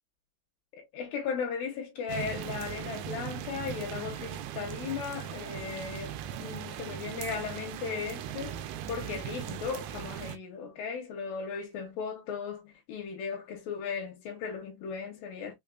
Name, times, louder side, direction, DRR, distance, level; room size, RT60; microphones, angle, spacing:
voice 1, 0.7-8.6 8.9-15.5, left 6 dB, 75° left, 2.5 m, -37 dB
sound 1, 2.1-10.4, right 10 dB, 90° right, 2.6 m, -39 dB
5.8 x 2.3 x 2.2 m
omnidirectional pair, 4.4 m